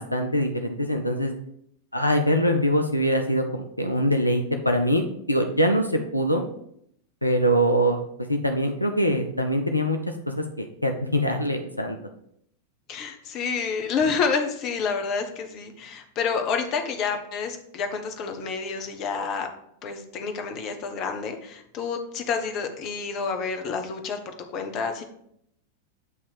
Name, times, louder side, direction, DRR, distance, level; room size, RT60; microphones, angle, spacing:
voice 1, 0.0-1.3 1.9-6.4 7.2-8.0 8.3-10.0 10.4-12.0, equal, 85° left, 5 dB, 0.5 m, -23 dB
voice 2, 12.9-19.5 19.8-25.0, left 5 dB, 40° left, 5 dB, 0.8 m, -29 dB
8.2 x 2.8 x 4.7 m, 0.71 s
figure-of-eight pair, 90°, 0 cm